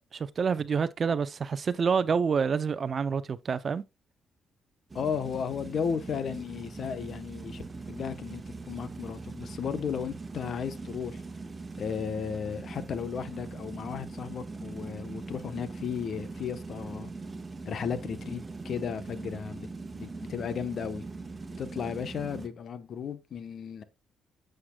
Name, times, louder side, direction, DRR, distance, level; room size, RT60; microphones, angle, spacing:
voice 1, 0.1-3.8, right 6 dB, 45° right, 0.6 m, -27 dB
voice 2, 4.9-11.2 11.8-17.1 17.6-19.7 19.9-21.1 21.6-23.8, left 7 dB, 55° left, 1.1 m, -35 dB
sound 1, 4.9-22.5, right 3 dB, 25° right, 1.6 m, -41 dB
8.6 x 7.8 x 2.3 m
cardioid pair, 90°, 0 cm